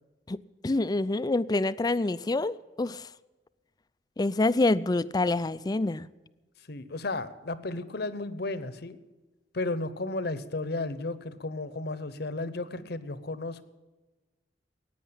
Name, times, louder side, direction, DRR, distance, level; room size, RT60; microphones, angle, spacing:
voice 1, 0.6-3.1 4.2-6.1, left 2 dB, 20° left, 16 dB, 0.4 m, -26 dB
voice 2, 6.7-9.0 9.5-13.6, left 2 dB, 60° left, 14 dB, 0.9 m, -33 dB
16.0 x 9.4 x 8.7 m, 1.2 s
head